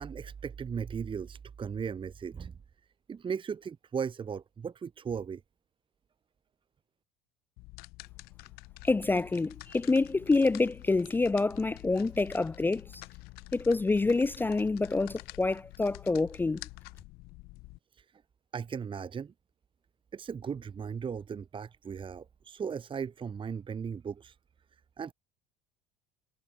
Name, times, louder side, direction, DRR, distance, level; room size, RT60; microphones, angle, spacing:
voice 1, 0.0-2.5 3.1-5.4 17.9-18.1 18.5-19.3 20.1-24.4 25.0-25.1, right 6 dB, 30° right, 1.8 m, -37 dB
sound 1, 7.6-17.8, left 24 dB, 65° left, 2.5 m, -48 dB
voice 2, 8.8-13.0 13.5-16.6, left 3 dB, 10° left, 0.4 m, -27 dB
hypercardioid pair, 75°, 17 cm